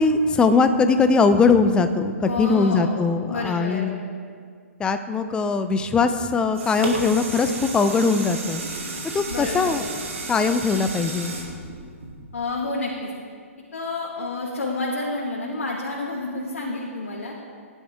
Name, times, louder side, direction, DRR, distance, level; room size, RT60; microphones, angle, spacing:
voice 1, 0.0-4.0 4.8-8.6 9.1-9.8 10.3-11.3, left 4 dB, 10° left, 9 dB, 0.7 m, -20 dB
voice 2, 2.2-2.9 3.3-3.9 9.3-9.9 12.3-13.1 13.7-17.3, left 2 dB, 65° left, -3 dB, 2.1 m, -29 dB
sound 1, 6.2-12.6 13.1-13.2, right 3 dB, 65° right, 2.7 m, -32 dB
18.0 x 11.0 x 3.7 m, 2.1 s
figure-of-eight pair, 120°, 8 cm